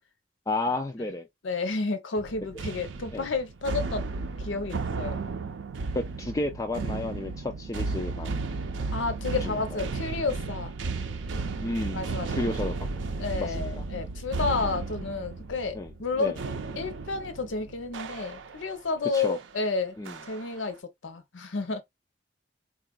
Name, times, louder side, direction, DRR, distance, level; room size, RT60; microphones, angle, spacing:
voice 1, 0.5-1.3 3.1-3.3 5.9-8.6 9.4-9.6 11.6-12.9 13.3-13.9 14.6-14.7 15.7-16.4 19.1-19.4 20.0-20.2, left 2 dB, 15° left, 0.3 m, -32 dB
voice 2, 1.4-5.2 8.9-10.7 11.9-12.4 13.2-16.4 16.8-20.0 20.3-20.8 21.0-21.8, left 4 dB, 85° left, 0.7 m, -31 dB
sound 1, 2.2-18.7 19.1-19.4 20.1-20.6, right 3 dB, 80° right, 0.5 m, -34 dB
3.8 x 2.4 x 2.3 m
head